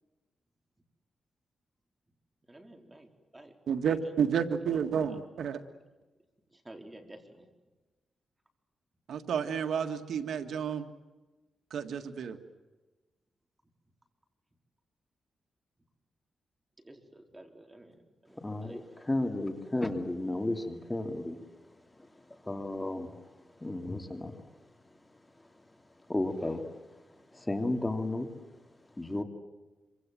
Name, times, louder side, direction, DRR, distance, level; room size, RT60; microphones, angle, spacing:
voice 1, 2.5-3.5 3.8-4.2 6.5-7.5 16.8-18.8, right 1 dB, 15° right, 4 dB, 4.3 m, -51 dB
voice 2, 3.7-5.6 9.1-10.9 11.7-12.4, right 7 dB, 85° right, 8 dB, 1.8 m, -31 dB
voice 3, 18.4-21.4 22.5-23.1 23.6-24.3 26.1-26.6 27.3-28.3 29.0-29.2, left 2 dB, 15° left, 6 dB, 2.7 m, -33 dB
26.5 x 25.0 x 7.6 m, 1.2 s
wide cardioid pair, 115°, 0 cm